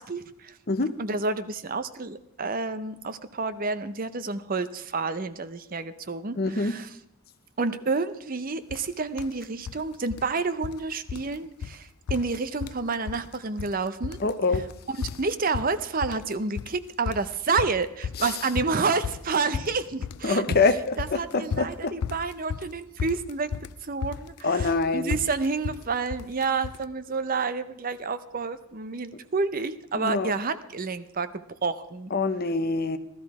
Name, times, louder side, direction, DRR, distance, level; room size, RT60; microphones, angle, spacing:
voice 1, 0.0-0.6 1.0-6.9 7.6-14.2 14.5-14.6 14.9-20.6 21.0-23.5 23.8-31.3 31.6-32.1, right 4 dB, 40° right, 12 dB, 0.6 m, -29 dB
voice 2, 6.4-6.8 14.2-14.6 20.2-21.9 24.4-25.2 29.9-30.3 32.1-33.0, left 3 dB, 45° left, 11 dB, 0.8 m, -25 dB
sound 1, 8.7-8.9 9.2-9.8 10.1-10.8 11.1-11.3 11.6-11.8 12.1-12.8 13.1-13.7 14.0-26.8, left 6 dB, 85° left, 0.4 m, -34 dB
16.0 x 12.5 x 4.8 m, 0.81 s
head